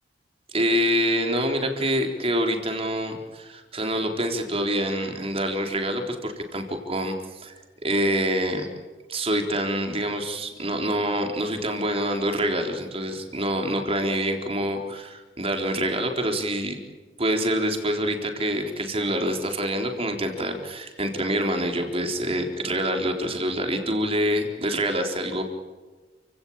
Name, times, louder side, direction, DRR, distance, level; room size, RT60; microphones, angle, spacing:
voice 1, 0.5-7.5 7.8-8.7 9.1-16.8 17.2-25.4, equal, 35° right, 4 dB, 3.9 m, -26 dB
29.5 x 17.5 x 8.9 m, 1.3 s
head